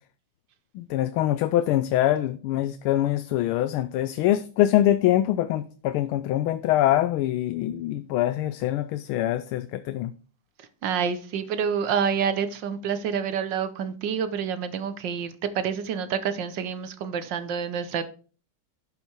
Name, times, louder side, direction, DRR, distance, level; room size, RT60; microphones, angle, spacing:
voice 1, 0.7-10.1, left 13 dB, 90° left, 1.5 m, -24 dB
voice 2, 10.8-18.0, right 7 dB, 65° right, 1.4 m, -28 dB
12.0 x 5.6 x 4.5 m
omnidirectional pair, 2.3 m